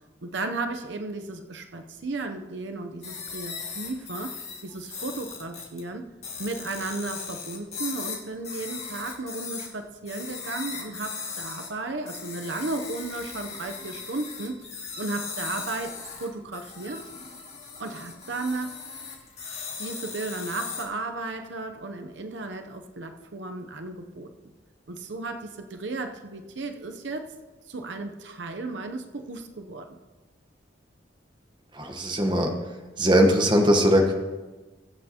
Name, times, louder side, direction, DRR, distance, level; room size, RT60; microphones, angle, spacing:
voice 1, 0.2-6.1 6.4-14.6 15.0-17.1 17.8-18.8 19.8-24.3 24.9-27.3 27.7-30.0, right 3 dB, 80° right, 5 dB, 0.8 m, -34 dB
sound 1, 3.0-5.8 6.2-9.7 10.1-11.7 12.1-20.8, left 5 dB, 35° left, 2.0 m, -38 dB
voice 2, 31.7-32.5 33.0-34.1, equal, 25° right, 2 dB, 1.2 m, -20 dB
22.0 x 7.7 x 2.9 m, 1.2 s
head